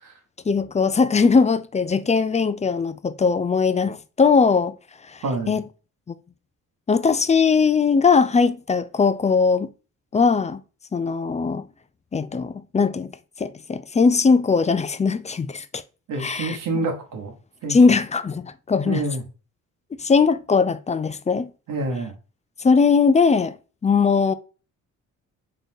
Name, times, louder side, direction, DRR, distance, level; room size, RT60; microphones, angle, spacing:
voice 1, 0.5-4.7 5.1-5.6 6.9-9.7 10.1-10.6 10.9-11.6 12.1-13.1 13.4-15.8 16.2-16.6 17.7-19.0 20.0-21.5 22.6-23.6 23.8-24.3, left 5 dB, 20° left, 0.4 m, -20 dB
voice 2, 5.2-5.6 16.1-17.3 17.6-17.8 18.8-19.2 21.7-22.1, right 2 dB, 65° right, 1.2 m, -27 dB
3.8 x 3.7 x 2.6 m
supercardioid pair, 60°, 34 cm